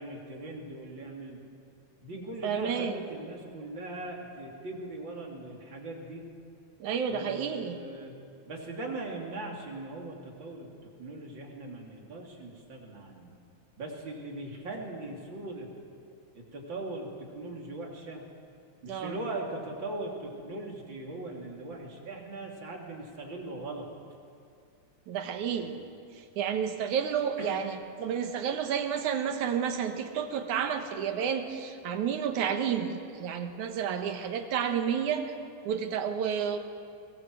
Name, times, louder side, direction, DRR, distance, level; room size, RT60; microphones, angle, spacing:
voice 1, 0.0-1.4 2.0-6.2 7.1-8.1 8.5-13.3 13.8-15.7 16.3-17.1 17.3-18.2 18.8-23.9 25.5-25.8 27.4-27.6, right 2 dB, 40° right, -1 dB, 3.4 m, -40 dB
voice 2, 2.4-2.9 6.8-7.8 18.9-19.2 25.1-25.8 26.4-35.3 35.7-36.6, right 8 dB, 75° right, 6 dB, 2.8 m, -30 dB
22.5 x 19.5 x 7.8 m, 2.5 s
omnidirectional pair, 3.6 m